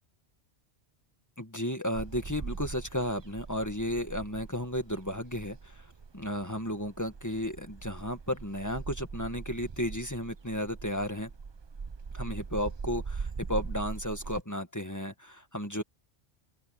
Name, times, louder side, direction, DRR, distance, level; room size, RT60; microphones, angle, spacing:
voice 1, 1.4-5.9 6.1-11.3 12.1-15.8, equal, 15° left, 1.8 m, -33 dB
sound 1, 1.9-14.4, right 5 dB, 35° right, 0.5 m, -41 dB
open air
omnidirectional pair, 1.1 m